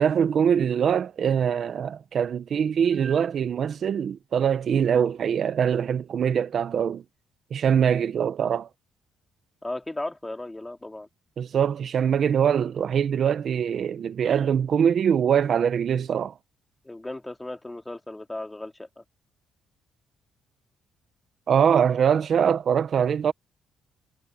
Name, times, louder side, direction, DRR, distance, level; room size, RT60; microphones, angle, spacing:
voice 1, 0.0-7.0 7.5-8.7 11.4-16.3 21.5-23.3, right 8 dB, 55° right, 0.9 m, -23 dB
voice 2, 9.6-11.1 16.8-19.0, left 2 dB, 15° left, 2.8 m, -36 dB
cardioid pair, 90°, 0 cm